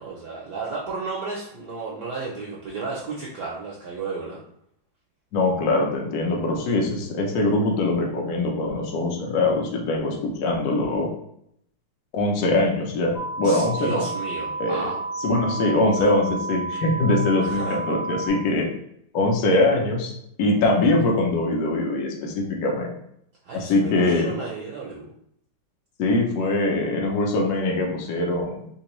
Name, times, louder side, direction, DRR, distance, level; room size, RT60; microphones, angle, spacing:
voice 1, 0.0-4.4 13.4-15.0 16.0-16.1 17.4-17.8 23.4-25.1, right 4 dB, 70° right, -4 dB, 1.0 m, -33 dB
voice 2, 5.3-11.1 12.1-14.0 14.6-14.8 15.2-18.7 19.1-20.1 20.4-23.0 23.5-24.3 26.0-28.7, left 2 dB, 65° left, 0 dB, 1.0 m, -22 dB
sound 1, 13.2-18.3, right 3 dB, 90° left, 0.8 m, -31 dB
3.5 x 2.9 x 3.0 m, 0.73 s
omnidirectional pair, 2.4 m